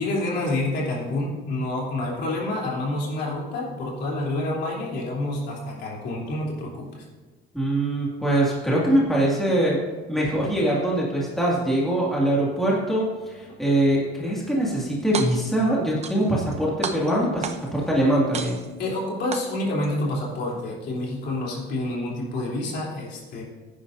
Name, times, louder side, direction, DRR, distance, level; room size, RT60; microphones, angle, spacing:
voice 1, 0.0-7.1 18.8-23.4, left 2 dB, 55° left, -3 dB, 3.5 m, -28 dB
voice 2, 7.5-9.8 10.1-18.6, right 1 dB, ahead, -5 dB, 2.2 m, -23 dB
sound 1, 15.0-15.6 16.0-16.6 16.8-17.8 18.3-18.9 19.3-19.9, right 6 dB, 30° right, 0.8 m, -33 dB
17.0 x 10.0 x 2.7 m, 1.3 s
cardioid pair, 145°, 20 cm